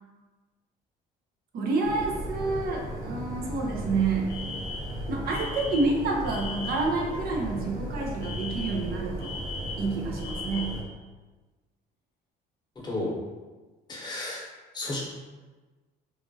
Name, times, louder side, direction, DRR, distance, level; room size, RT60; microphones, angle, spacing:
voice 1, 1.5-4.3 5.1-9.4 9.8-10.7, right 3 dB, 65° right, -1 dB, 0.6 m, -28 dB
sound 1, 1.8-10.8, right 1 dB, 20° right, 0.9 m, -36 dB
Alarm, 4.3-7.0 8.2-10.9, left 4 dB, 75° left, 0.5 m, -39 dB
voice 2, 12.8-13.1 13.9-14.4 14.7-15.0, left 2 dB, 25° left, -4 dB, 0.8 m, -32 dB
2.9 x 2.4 x 2.7 m, 1.3 s
cardioid pair, 110°, 17 cm